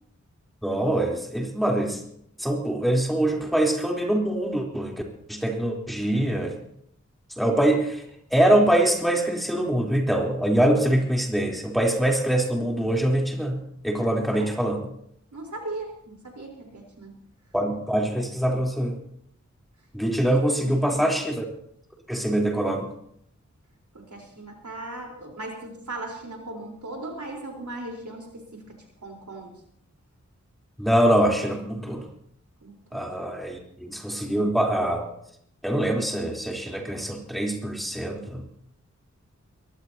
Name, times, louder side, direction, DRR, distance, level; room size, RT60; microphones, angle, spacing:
voice 1, 0.6-2.0 2.4-5.0 5.3-6.6 7.4-8.0 8.3-13.6 13.8-14.9 17.5-19.0 19.9-21.4 22.1-22.9 30.8-32.0 32.9-35.1 35.6-38.4, right 1 dB, ahead, -1 dB, 3.6 m, -24 dB
voice 2, 15.3-17.1 20.1-20.8 23.9-29.5 32.6-33.0, right 2 dB, 80° right, 0 dB, 4.1 m, -38 dB
22.0 x 17.0 x 2.9 m, 0.69 s
wide cardioid pair, 50°, 29 cm